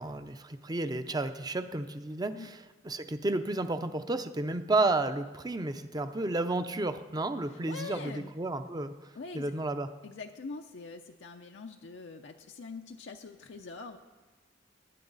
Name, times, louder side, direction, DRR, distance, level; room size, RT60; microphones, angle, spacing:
voice 1, 0.0-2.3 2.8-8.9 9.3-9.9, right 2 dB, 20° right, 9 dB, 0.6 m, -31 dB
voice 2, 7.5-8.3 9.1-9.5 10.0-14.0, left 4 dB, 70° left, 3 dB, 0.6 m, -44 dB
20.0 x 9.5 x 4.0 m, 1.2 s
head